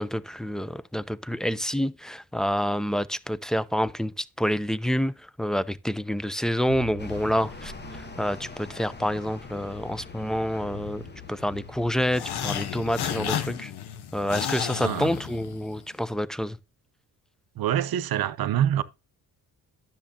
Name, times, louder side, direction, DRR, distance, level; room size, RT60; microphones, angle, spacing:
voice 1, 0.0-11.0 11.3-13.7 14.1-16.6, equal, ahead, 0.5 m, -28 dB
sound 1, 6.7-13.1, equal, 85° left, 3.5 m, -46 dB
sound 2, 7.0-13.6, left 5 dB, 25° left, 1.1 m, -44 dB
sound 3, 12.1-15.8, left 9 dB, 70° left, 1.0 m, -32 dB
voice 2, 14.8-15.1 17.6-18.8, right 10 dB, 60° right, 0.8 m, -25 dB
10.0 x 7.1 x 2.7 m
cardioid pair, 70°, 40 cm